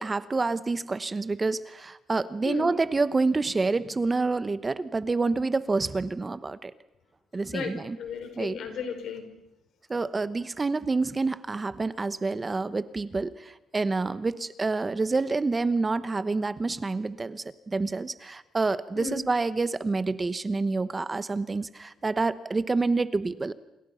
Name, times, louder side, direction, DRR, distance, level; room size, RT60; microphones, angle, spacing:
voice 1, 0.0-6.7 7.3-8.0 8.4-8.6 9.9-23.5, right 3 dB, 25° right, 14 dB, 1.1 m, -28 dB
voice 2, 7.5-9.3 18.9-19.2, left 5 dB, 70° left, 7 dB, 4.9 m, -35 dB
28.0 x 27.0 x 5.8 m, 0.90 s
cardioid pair, 90°, 0 cm